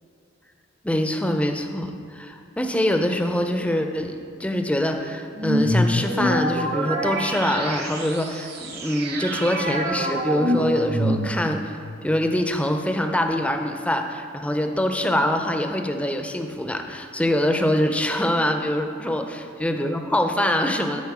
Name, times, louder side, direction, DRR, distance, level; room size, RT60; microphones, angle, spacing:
voice 1, 0.8-21.0, left 1 dB, 5° left, 5 dB, 0.5 m, -24 dB
sound 1, 5.4-11.7, equal, 55° right, 1.1 m, -25 dB
12.5 x 4.4 x 4.8 m, 2.3 s
head